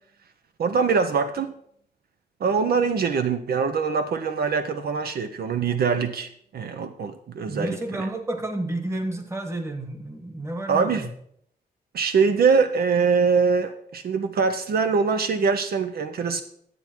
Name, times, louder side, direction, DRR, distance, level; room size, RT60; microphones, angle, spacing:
voice 1, 0.6-1.5 2.4-7.8 10.7-11.1 11.9-16.4, right 5 dB, 70° right, 9 dB, 0.7 m, -23 dB
voice 2, 7.5-11.1, right 1 dB, 15° right, 5 dB, 1.4 m, -30 dB
11.0 x 8.3 x 4.5 m, 0.66 s
wide cardioid pair, 150°, 17 cm